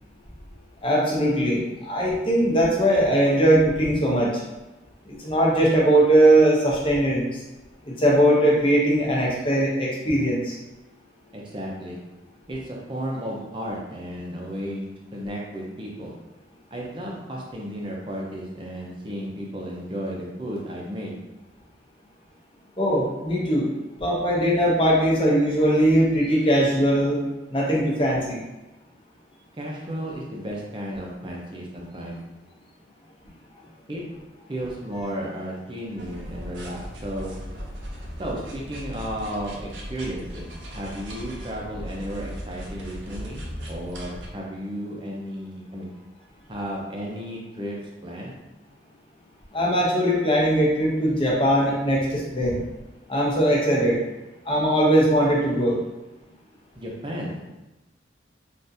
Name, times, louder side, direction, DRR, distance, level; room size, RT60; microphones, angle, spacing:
voice 1, 0.8-4.4 5.1-7.3 7.9-10.6 22.8-23.7 24.0-27.2 27.5-28.4 49.5-52.6 53.1-54.0 54.5-55.8, right 1 dB, 30° left, -4 dB, 0.7 m, -20 dB
voice 2, 11.3-12.0 12.5-16.1 16.7-21.2 29.6-32.2 33.9-34.2 34.5-37.4 38.2-40.5 40.7-45.9 46.5-48.3 56.8-57.5, equal, 25° right, -2 dB, 0.6 m, -33 dB
sound 1, 36.0-44.3, equal, 80° right, 0.6 m, -37 dB
3.4 x 2.5 x 2.7 m, 1.0 s
head